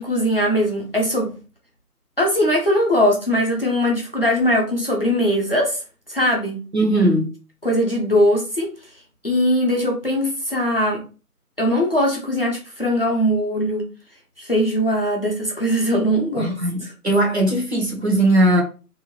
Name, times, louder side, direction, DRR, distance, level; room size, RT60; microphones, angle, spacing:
voice 1, 0.0-1.3 2.2-5.8 6.1-6.6 7.6-8.7 9.2-11.0 11.6-13.9 14.4-16.6 16.8-16.9, equal, 40° left, 0.7 m, -20 dB
voice 2, 6.7-7.3 16.4-18.6, right 1 dB, 45° right, 0.9 m, -19 dB
2.7 x 2.5 x 2.8 m
figure-of-eight pair, 170°, 47 cm